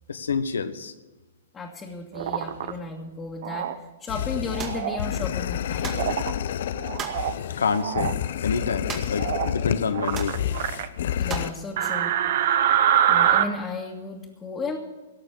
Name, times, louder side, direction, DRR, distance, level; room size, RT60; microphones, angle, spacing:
voice 1, 0.1-0.9 7.6-8.1 8.4-10.4, left 5 dB, 80° left, 11 dB, 1.1 m, -27 dB
voice 2, 1.5-3.7 4.0-5.9 11.2-12.1 13.1-14.8, left 3 dB, 20° left, -3 dB, 1.9 m, -34 dB
sound 1, 2.1-2.7 3.4-3.8 4.5-5.0 5.9-6.3 6.8-7.4 7.7-8.1 9.1-9.6 9.9-10.9 11.8-13.4, right 10 dB, 60° right, 1.0 m, -24 dB
sound 2, 4.1-11.5, left 10 dB, 65° left, 0.5 m, -29 dB
sound 3, 4.6-4.8 5.8-6.1 7.0-7.3 8.9-9.3 9.5-9.6 10.1-10.4 11.3-11.6, right 6 dB, 25° right, 2.1 m, -35 dB
18.0 x 6.8 x 8.5 m, 1.2 s
hypercardioid pair, 120°, 0 cm